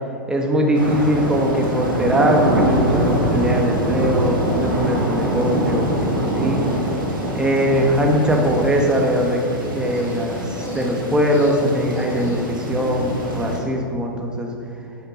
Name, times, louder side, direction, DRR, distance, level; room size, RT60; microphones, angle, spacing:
voice 1, 0.3-6.6 7.3-14.5, equal, 5° right, 1 dB, 1.5 m, -21 dB
Human voice, 0.7-0.8 1.6-2.0 2.5-2.6 3.0-3.2 3.5-3.7 4.1-4.3 4.6-5.6 5.9-6.2 6.5-12.7, left 2 dB, 30° left, 2.3 m, -39 dB
sound 1, 0.7-13.6, right 1 dB, 85° right, 2.6 m, -24 dB
10.5 x 8.2 x 4.0 m, 2.6 s
hypercardioid pair, 110°, 11 cm